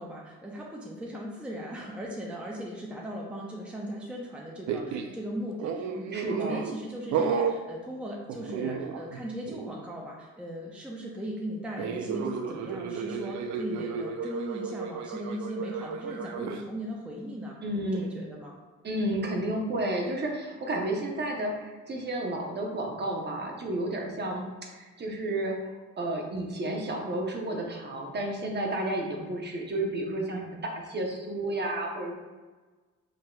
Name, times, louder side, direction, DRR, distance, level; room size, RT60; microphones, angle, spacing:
voice 1, 0.0-17.6 17.9-18.6, equal, 5° right, -2 dB, 0.5 m, -38 dB
sound 1, 4.7-5.2 5.6-6.8 7.1-7.6 8.3-9.2 9.5-9.7 11.8-16.6, right 6 dB, 70° right, 0.4 m, -32 dB
voice 2, 6.1-6.6 17.6-18.1 18.8-32.1, right 1 dB, 35° right, 1 dB, 0.8 m, -32 dB
4.9 x 2.8 x 2.3 m, 1.3 s
cardioid pair, 90°, 30 cm